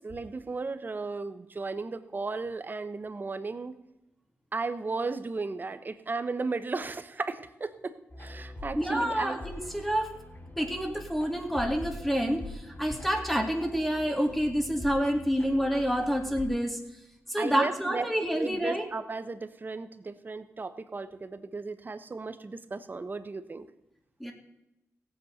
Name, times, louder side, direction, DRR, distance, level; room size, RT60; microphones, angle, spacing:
voice 1, 0.0-3.7 4.5-9.4 17.4-18.1 18.3-23.7, right 3 dB, 40° right, 12 dB, 1.1 m, -35 dB
sound 1, 8.1-16.5, left 2 dB, 40° left, 5.8 m, -44 dB
voice 2, 8.8-10.1 10.6-16.8 17.3-18.9 24.2-24.3, equal, 5° left, 3 dB, 2.5 m, -28 dB
15.5 x 8.4 x 6.6 m, 0.90 s
cardioid pair, 70°, 5 cm